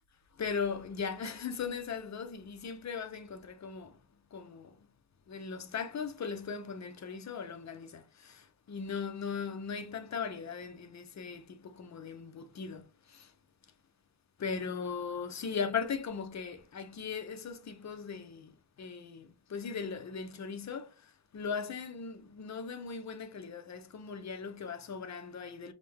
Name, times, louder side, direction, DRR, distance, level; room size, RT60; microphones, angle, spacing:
voice 1, 0.4-4.0 4.3-4.7 5.3-12.8 13.1-13.3 14.4-18.5 18.8-25.7, left 6 dB, 40° left, 0.6 m, -38 dB
5.0 x 2.1 x 3.5 m
wide cardioid pair, 135°, 45 cm